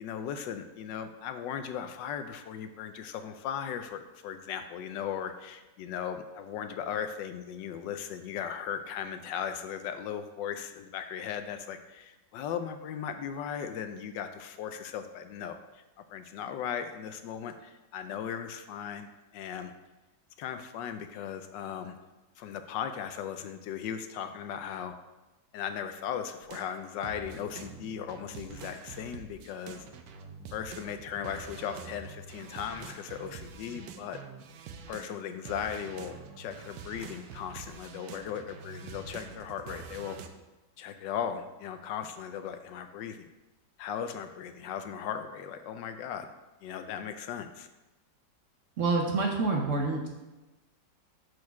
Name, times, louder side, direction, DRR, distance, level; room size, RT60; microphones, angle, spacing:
voice 1, 0.0-19.7 20.4-22.0 22.4-24.9 25.5-29.8 30.5-34.2 34.9-40.2 40.8-43.3 43.8-46.3 46.6-47.7, left 8 dB, 75° left, 8 dB, 1.2 m, -37 dB
sound 1, 26.4-35.2 35.5-40.3, right 6 dB, 85° right, 1.4 m, -46 dB
voice 2, 48.8-50.1, right 3 dB, 55° right, 0 dB, 1.0 m, -27 dB
6.3 x 4.8 x 5.8 m, 1.1 s
omnidirectional pair, 2.0 m